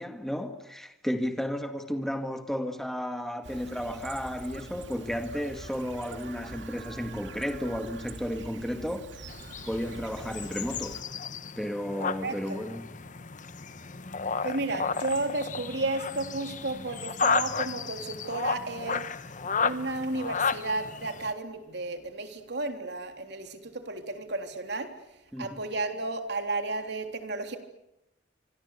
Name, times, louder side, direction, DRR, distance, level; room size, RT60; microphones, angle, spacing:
voice 1, 0.0-9.3 9.7-11.0 11.6-12.8 25.3-25.6, equal, ahead, 2.0 m, -33 dB
Chirp tweet, 3.4-11.0, right 2 dB, 90° right, 2.4 m, -44 dB
frogs and birds, 9.3-21.3, left 5 dB, 45° left, 1.1 m, -33 dB
voice 2, 12.0-12.6 14.4-19.0 19.6-24.9 25.4-27.6, right 2 dB, 65° right, 3.5 m, -33 dB
26.0 x 26.0 x 8.4 m
head